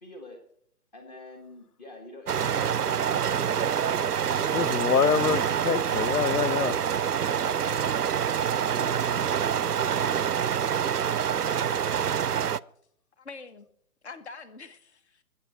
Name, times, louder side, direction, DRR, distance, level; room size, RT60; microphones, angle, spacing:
voice 1, 0.0-0.4 0.9-5.2 6.9-7.1, left 2 dB, 30° left, 1.6 m, -47 dB
sound 1, 2.3-12.6, right 8 dB, 85° right, 0.6 m, -26 dB
voice 2, 4.5-6.7, left 7 dB, 80° left, 0.8 m, -25 dB
voice 3, 7.4-7.9 8.7-9.4 13.2-13.7 14.0-15.2, left 4 dB, 45° left, 1.5 m, -44 dB
20.5 x 8.7 x 4.3 m
figure-of-eight pair, 140°, 45 cm